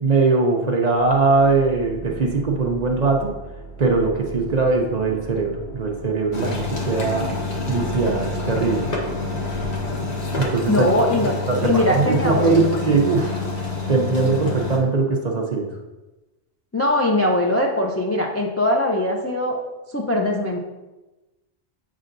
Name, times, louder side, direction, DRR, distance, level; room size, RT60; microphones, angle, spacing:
voice 1, 0.0-3.4 3.8-7.3 7.7-8.9 10.4-10.9 11.5-13.4 13.9-15.7, right 3 dB, 45° right, 1 dB, 0.6 m, -21 dB
sound 1, 0.9-11.7, right 4 dB, 65° left, 1.6 m, -39 dB
sound 2, 6.3-14.8, left 3 dB, 40° left, 0.9 m, -27 dB
voice 2, 10.7-11.3 11.6-12.7 16.7-19.5 19.9-20.6, left 1 dB, 25° left, 0 dB, 0.3 m, -21 dB
7.3 x 5.4 x 2.6 m, 1.1 s
omnidirectional pair, 1.2 m